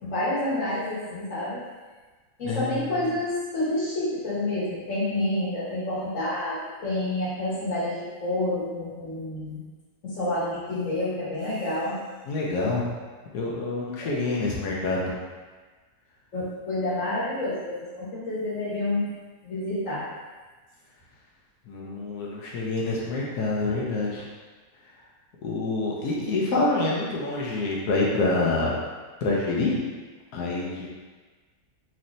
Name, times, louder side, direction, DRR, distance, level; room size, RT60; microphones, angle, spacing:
voice 1, 0.0-1.6 2.4-9.6 10.0-12.0 14.0-14.1 16.3-19.1 19.4-20.1, left 1 dB, 55° left, -9 dB, 1.7 m, -28 dB
voice 2, 12.3-12.9 13.3-15.2 21.7-24.3 25.4-28.8 29.2-29.8 30.3-30.9, left 2 dB, 85° left, -4 dB, 1.3 m, -26 dB
4.3 x 3.1 x 2.6 m, 1.4 s
omnidirectional pair, 1.6 m